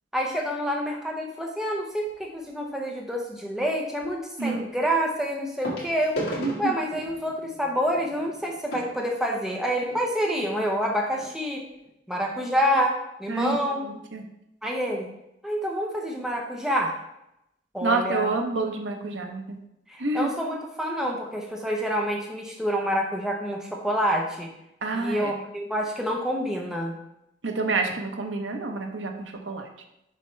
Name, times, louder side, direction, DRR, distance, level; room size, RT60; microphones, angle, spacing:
voice 1, 0.1-6.3 6.6-11.7 12.1-13.8 14.6-15.1 15.4-17.0 17.7-18.3 19.9-24.5 24.9-26.9, equal, 5° right, -1 dB, 0.7 m, -27 dB
sound 1, 2.1-2.4 4.0-4.1 5.6-10.0 10.8-10.9 11.1-11.3 11.8-11.9, equal, 55° left, 2.0 m, -36 dB
voice 2, 6.4-6.7 13.3-13.6 13.8-14.2 17.8-19.6 20.0-20.3 24.8-25.4 27.4-29.6, right 3 dB, 75° right, 3 dB, 0.9 m, -28 dB
6.7 x 5.7 x 3.2 m, 0.84 s
head